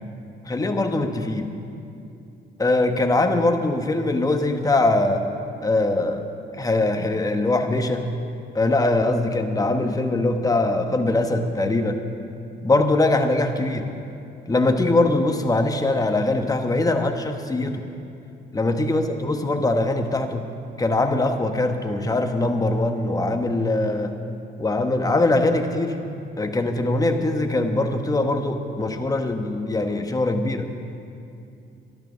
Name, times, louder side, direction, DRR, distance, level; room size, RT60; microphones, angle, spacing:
voice 1, 0.4-1.5 2.6-5.3 5.6-6.2 6.5-8.1 8.5-12.0 12.6-13.9 14.5-17.9 18.5-20.5 20.8-24.1 24.6-26.0 26.4-30.7, left 2 dB, 20° left, 5 dB, 1.1 m, -22 dB
12.5 x 11.0 x 6.6 m, 2.6 s
cardioid pair, 90°, 20 cm